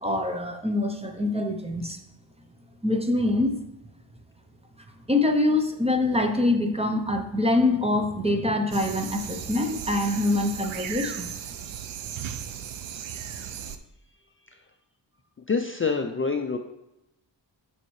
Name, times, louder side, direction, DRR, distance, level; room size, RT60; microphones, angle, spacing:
voice 1, 0.0-2.0 2.8-3.6 5.1-11.3, left 2 dB, 15° right, 4 dB, 0.6 m, -24 dB
sound 1, 8.7-13.8, right 9 dB, 85° right, 0.6 m, -36 dB
voice 2, 15.5-16.6, left 4 dB, 30° left, 4 dB, 0.4 m, -26 dB
6.8 x 6.5 x 3.1 m, 0.88 s
wide cardioid pair, 150°, 46 cm